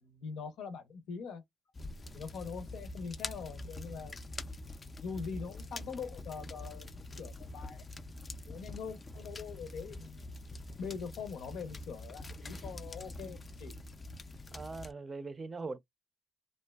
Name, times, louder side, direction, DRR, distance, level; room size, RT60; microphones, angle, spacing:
voice 1, 0.0-1.4 2.1-4.2 5.0-6.9 7.2-7.8 8.5-10.3 10.8-13.8 14.7-14.8, left 5 dB, 80° left, 0.6 m, -43 dB
sound 1, 1.7-14.9, left 2 dB, 30° left, 0.4 m, -45 dB
voice 2, 14.5-15.8, right 3 dB, 30° right, 0.5 m, -41 dB
2.5 x 2.2 x 2.2 m
cardioid pair, 90°, 0 cm